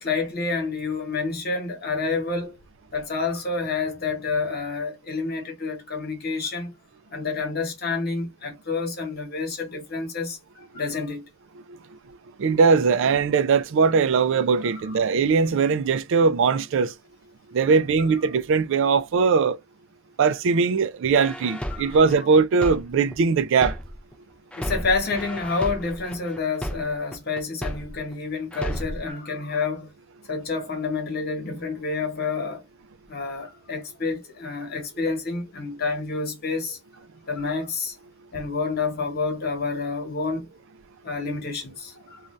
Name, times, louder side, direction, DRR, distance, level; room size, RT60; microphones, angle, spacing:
voice 1, 0.0-2.6 2.9-6.7 7.1-11.3 18.2-18.3 21.7-22.0 24.6-29.9 30.3-32.6 33.1-36.8 37.3-37.9 38.3-40.5 41.0-42.2, left 4 dB, 45° left, 1.1 m, -28 dB
voice 2, 12.4-16.9 17.5-19.6 20.2-23.8, right 5 dB, 60° right, 0.4 m, -20 dB
sound 1, 21.1-24.1 24.5-28.1 28.5-29.1, equal, 5° left, 0.4 m, -33 dB
2.6 x 2.3 x 3.1 m
head